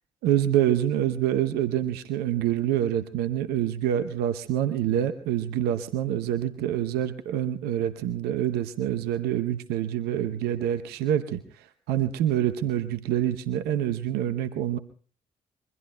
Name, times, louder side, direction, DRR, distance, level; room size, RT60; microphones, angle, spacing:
voice 1, 0.2-14.8, right 11 dB, 70° right, 11 dB, 0.8 m, -26 dB
26.5 x 23.0 x 2.2 m, 0.41 s
hypercardioid pair, 40°, 17 cm